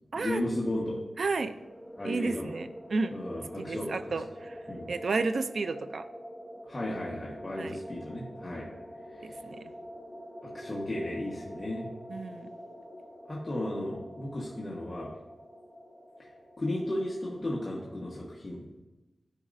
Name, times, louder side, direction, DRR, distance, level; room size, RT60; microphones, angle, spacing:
voice 1, 0.1-1.0 2.0-2.5 3.1-3.9 4.7-4.9 6.7-8.7 9.1-9.4 10.5-11.9 13.3-15.1 16.6-18.6, left 1 dB, 30° left, -5 dB, 1.2 m, -34 dB
voice 2, 1.2-1.6 2.0-3.2 3.6-4.6 4.9-6.1 7.6-7.8 9.2-9.7 12.1-12.5, right 3 dB, 65° right, 11 dB, 0.4 m, -32 dB
sound 1, 1.3-18.2, equal, 10° right, 1.2 m, -46 dB
12.5 x 5.1 x 2.6 m, 1.1 s
wide cardioid pair, 110°, 0 cm